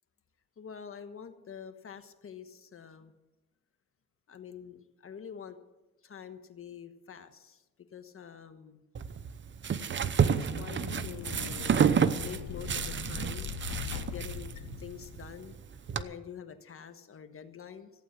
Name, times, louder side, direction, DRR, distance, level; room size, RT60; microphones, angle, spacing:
voice 1, 0.6-3.1 4.3-5.6 6.0-7.6 7.9-8.8 10.2-13.6 13.9-15.6 15.9-17.9, left 7 dB, 45° left, 8 dB, 1.4 m, -46 dB
sound 1, 8.9-16.0, right 7 dB, 40° right, 0.8 m, -30 dB
sound 2, 9.8-15.5, left 9 dB, 85° left, 1.0 m, -41 dB
15.0 x 9.1 x 7.5 m, 1.0 s
cardioid pair, 90°, 30 cm